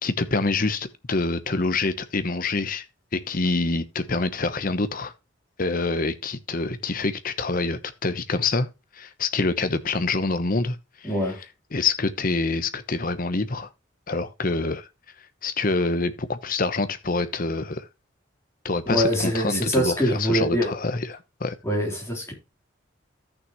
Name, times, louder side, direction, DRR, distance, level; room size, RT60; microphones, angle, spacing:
voice 1, 0.0-2.9 3.1-5.1 5.6-8.7 8.9-11.1 11.7-13.7 14.1-14.9 15.4-17.8 18.6-21.5, left 3 dB, 45° left, 0.9 m, -26 dB
voice 2, 11.0-11.4 18.9-20.7 21.6-22.3, equal, 15° left, 3.5 m, -24 dB
14.0 x 6.3 x 3.0 m
head